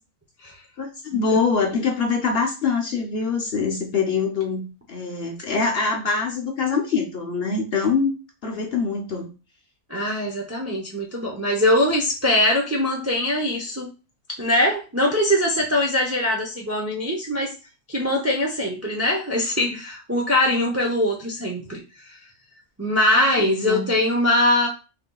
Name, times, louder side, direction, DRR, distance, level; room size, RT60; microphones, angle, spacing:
voice 1, 0.8-8.1 8.4-9.3 23.2-23.9, left 5 dB, 50° left, 1 dB, 0.8 m, -24 dB
voice 2, 9.9-13.9 14.4-17.5 17.9-21.8 22.1-22.2 22.8-24.7, left 1 dB, 25° right, -1 dB, 0.3 m, -22 dB
5.8 x 2.7 x 2.3 m, 0.31 s
omnidirectional pair, 1.6 m